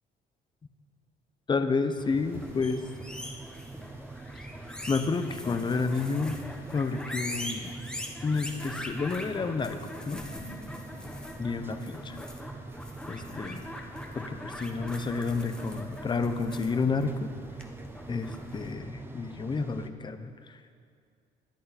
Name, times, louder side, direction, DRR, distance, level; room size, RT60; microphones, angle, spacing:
voice 1, 1.5-2.8 4.9-6.4 6.7-7.7 8.2-9.8 10.1-10.2 11.4-12.2 13.1-13.6 14.1-17.3 18.1-20.6, left 4 dB, 25° left, 9 dB, 0.9 m, -30 dB
sound 1, 2.0-19.9, right 2 dB, 15° right, 0.9 m, -44 dB
sound 2, 2.2-18.7, left 1 dB, 5° left, 1.3 m, -42 dB
21.5 x 8.5 x 4.3 m, 2.2 s
cardioid pair, 110°, 17 cm